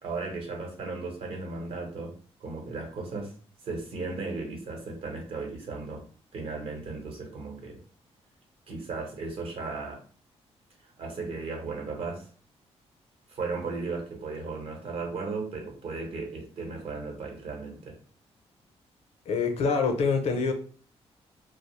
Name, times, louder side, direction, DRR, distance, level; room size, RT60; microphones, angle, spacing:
voice 1, 0.0-3.3 3.6-6.1 6.3-7.8 8.7-10.0 10.8-12.3 13.3-18.0, right 3 dB, 60° right, 1 dB, 0.9 m, -36 dB
voice 2, 19.3-20.5, left 4 dB, 70° left, 5 dB, 0.5 m, -25 dB
2.7 x 2.0 x 3.0 m, 0.41 s
wide cardioid pair, 175°, 11 cm